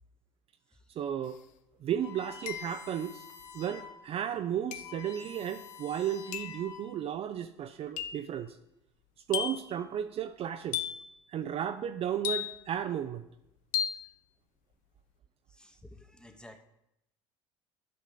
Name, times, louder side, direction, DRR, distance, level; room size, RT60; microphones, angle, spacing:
voice 1, 1.0-1.4 1.8-3.3 3.5-8.6 9.3-10.8 11.3-13.2, right 9 dB, 40° right, 9 dB, 0.4 m, -34 dB
sound 1, 1.3-1.4 2.5-3.0 4.7-5.0 6.3-6.6 8.0-8.3 9.3-9.8 10.7-11.1 12.2-12.8 13.7-14.1, left 10 dB, 55° left, 0.7 m, -35 dB
sound 2, 2.0-4.0 4.4-4.5 4.7-7.2, left 7 dB, 85° left, 1.0 m, -49 dB
voice 2, 15.5-16.6, left 1 dB, 5° left, 7 dB, 0.9 m, -53 dB
12.0 x 5.4 x 3.9 m, 0.83 s
hypercardioid pair, 70°, 16 cm